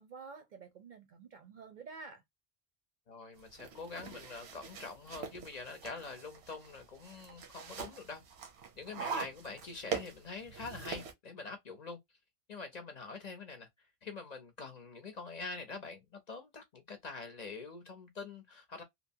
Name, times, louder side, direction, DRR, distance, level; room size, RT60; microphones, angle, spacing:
voice 1, 0.0-2.2, right 4 dB, 55° right, 0.6 m, -50 dB
voice 2, 3.1-8.2 8.8-12.0 12.5-18.8, left 4 dB, 50° left, 0.6 m, -45 dB
sound 1, 3.4-11.1, right 6 dB, 90° right, 0.9 m, -43 dB
2.9 x 2.1 x 2.6 m
omnidirectional pair, 1.1 m